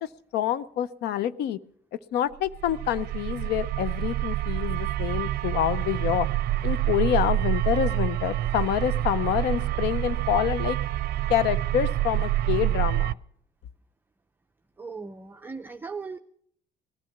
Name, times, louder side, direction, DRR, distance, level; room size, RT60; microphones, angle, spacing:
voice 1, 0.0-1.6 2.1-6.3 6.6-10.8 11.3-13.2, left 11 dB, 75° left, 17 dB, 0.6 m, -27 dB
sound 1, 2.5-13.1, right 14 dB, 65° right, 0.5 m, -27 dB
voice 2, 14.8-16.2, right 4 dB, 10° right, 4 dB, 0.6 m, -38 dB
18.0 x 12.0 x 5.8 m, 0.66 s
cardioid pair, 110°, 17 cm